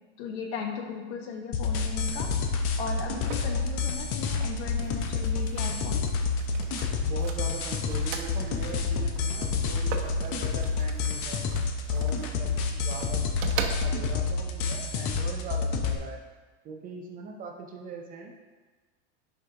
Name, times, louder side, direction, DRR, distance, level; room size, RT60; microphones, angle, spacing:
voice 1, 0.2-2.3 2.8-6.1, left 5 dB, 65° left, 3 dB, 1.2 m, -37 dB
sound 1, 1.5-16.0, left 4 dB, 40° left, 0.7 m, -29 dB
sound 2, 1.6-14.3, right 3 dB, 80° right, 1.0 m, -40 dB
voice 2, 7.0-11.5 11.9-13.2 13.6-16.2 16.6-18.4, right 4 dB, 25° right, 1 dB, 0.5 m, -41 dB
9.6 x 5.2 x 2.8 m, 1.4 s
supercardioid pair, 150°, 36 cm